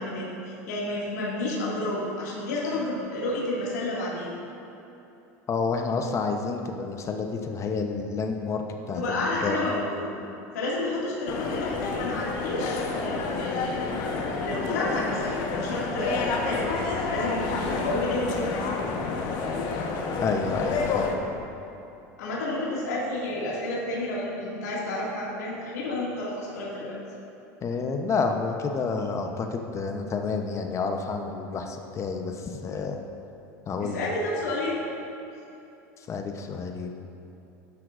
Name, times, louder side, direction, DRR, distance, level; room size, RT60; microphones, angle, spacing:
voice 1, 0.0-4.3 8.9-10.1 10.5-18.6 22.2-27.0 33.8-34.8, left 2 dB, 85° left, -5 dB, 2.2 m, -30 dB
voice 2, 5.5-8.6 8.9-9.6 20.2-21.1 27.6-33.0 33.7-34.1 36.1-36.9, left 4 dB, 35° left, 4 dB, 0.9 m, -29 dB
sound 1, 11.3-21.1, left 4 dB, 55° left, 1.2 m, -29 dB
11.5 x 9.9 x 2.6 m, 2.9 s
hypercardioid pair, 95°, 9 cm